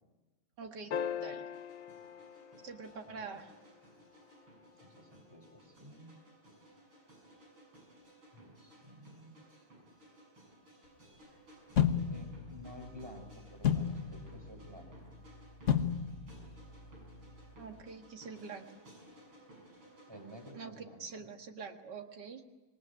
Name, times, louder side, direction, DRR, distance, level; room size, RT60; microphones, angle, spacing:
voice 1, 0.6-1.5 2.6-3.5 17.6-18.7 20.5-22.4, right 5 dB, 55° right, 5 dB, 2.4 m, -46 dB
sound 1, 0.9-3.4 5.7-5.8, left 8 dB, 75° left, 1.9 m, -40 dB
sound 2, 1.5-20.5, right 1 dB, 75° right, 7.6 m, -59 dB
voice 2, 4.8-6.1 8.3-9.6 12.1-15.1 20.1-21.3, equal, 10° right, 4 dB, 4.9 m, -52 dB
sound 3, 11.8-17.8, left 8 dB, 40° left, 1.3 m, -35 dB
26.5 x 20.0 x 9.7 m, 1.1 s
omnidirectional pair, 2.2 m